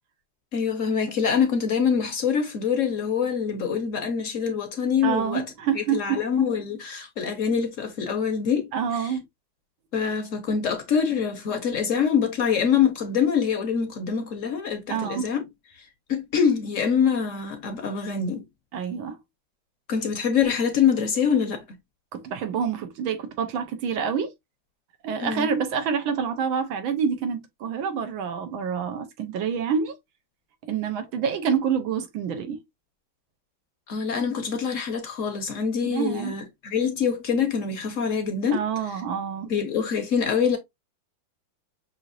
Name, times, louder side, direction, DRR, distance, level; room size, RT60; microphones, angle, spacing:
voice 1, 0.5-5.4 5.7-9.1 9.9-15.5 16.1-18.4 19.9-21.6 25.2-25.5 33.9-38.6 39.4-40.6, left 7 dB, 60° left, 0.9 m, -25 dB
voice 2, 5.0-6.2 8.7-9.2 14.9-15.3 18.7-19.2 22.1-24.3 25.0-30.0 30.7-32.6 35.8-36.3 38.5-39.5, right 7 dB, 85° right, 1.7 m, -27 dB
6.2 x 2.8 x 2.5 m
omnidirectional pair, 2.1 m